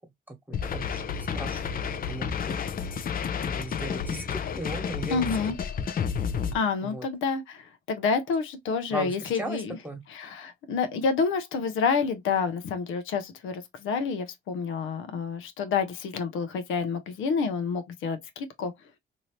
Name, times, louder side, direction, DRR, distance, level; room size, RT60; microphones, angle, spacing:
sound 1, 0.5-6.5, left 7 dB, 45° left, 0.5 m, -31 dB
voice 1, 0.7-2.5 3.4-5.3 5.8-5.9 6.8-7.0 8.9-10.0, right 2 dB, 10° right, 1.3 m, -37 dB
voice 2, 5.1-5.6 6.5-9.8 10.1-18.7, left 5 dB, 85° left, 0.7 m, -28 dB
2.8 x 2.7 x 3.1 m
cardioid pair, 90°, 20 cm